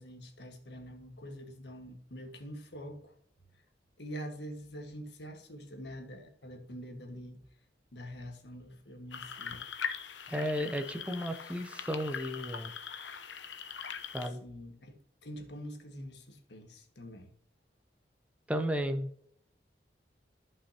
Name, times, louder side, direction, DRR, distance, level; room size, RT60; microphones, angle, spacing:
voice 1, 0.0-3.1 4.0-7.4 7.9-9.6 14.4-15.0 15.2-17.3, equal, 70° left, 1.6 m, -45 dB
sound 1, 9.1-14.3, left 7 dB, 90° left, 0.9 m, -41 dB
voice 2, 10.3-12.7 14.1-14.4 18.5-19.1, equal, 5° right, 0.6 m, -33 dB
14.5 x 5.5 x 2.9 m
head